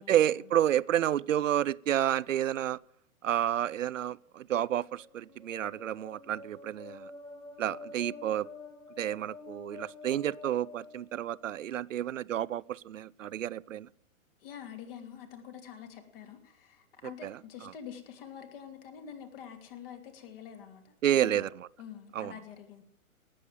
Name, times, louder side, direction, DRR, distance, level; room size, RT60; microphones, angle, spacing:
voice 1, 0.1-2.8 3.2-7.1 7.6-8.5 9.0-13.9 17.2-17.7 21.0-21.7 22.1-22.3, right 11 dB, 65° right, 0.6 m, -30 dB
sound 1, 4.8-11.7, left 3 dB, 5° left, 1.0 m, -48 dB
voice 2, 14.4-21.5 21.8-22.8, left 8 dB, 40° left, 2.8 m, -46 dB
18.5 x 7.7 x 7.6 m
figure-of-eight pair, 120°, 41 cm